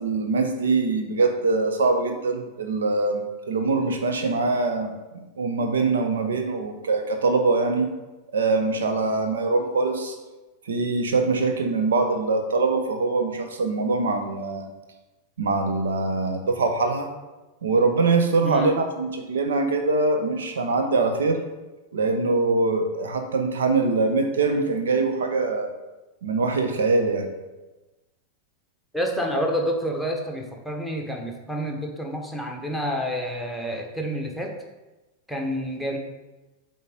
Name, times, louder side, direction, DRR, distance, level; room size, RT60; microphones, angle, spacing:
voice 1, 0.0-4.9 5.4-7.9 8.3-10.2 10.7-14.7 15.4-17.1 17.6-21.4 21.9-25.7 26.2-27.3, right 3 dB, 65° right, 5 dB, 1.0 m, -23 dB
voice 2, 18.4-18.7 28.9-34.5 35.3-36.0, equal, ahead, 0 dB, 1.3 m, -28 dB
8.2 x 4.0 x 5.1 m, 1.1 s
figure-of-eight pair, 90°, 0 cm